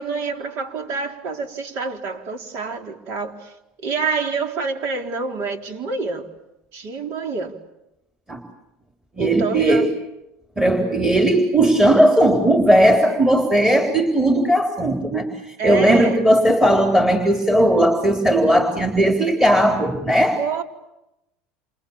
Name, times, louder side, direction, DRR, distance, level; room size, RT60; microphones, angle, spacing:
voice 1, 0.0-3.5 3.8-6.3 6.7-7.5 9.2-9.9 10.7-10.8 15.6-16.2 20.4-20.6, right 4 dB, 60° right, 4.1 m, -27 dB
voice 2, 9.2-9.9 10.6-20.4, right 1 dB, 10° right, 3.8 m, -17 dB
28.5 x 28.5 x 7.3 m
supercardioid pair, 110°, 5 cm